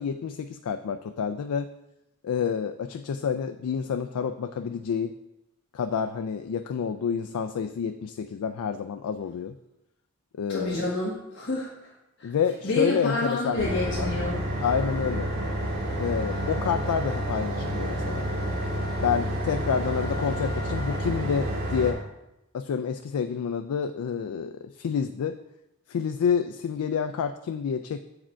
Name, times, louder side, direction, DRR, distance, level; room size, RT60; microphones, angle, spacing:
voice 1, 0.0-1.7 2.2-5.1 5.7-9.5 10.4-10.9 12.2-14.1 14.6-15.3 16.0-18.3 19.0-22.0 22.5-25.4 25.9-28.0, left 7 dB, 85° left, 7 dB, 0.3 m, -28 dB
voice 2, 10.5-11.9 12.2-12.3 12.6-14.4, left 2 dB, 50° left, -5 dB, 1.2 m, -29 dB
sound 1, 13.6-21.9, equal, 45° right, 1.5 m, -29 dB
7.4 x 4.9 x 4.4 m, 0.91 s
head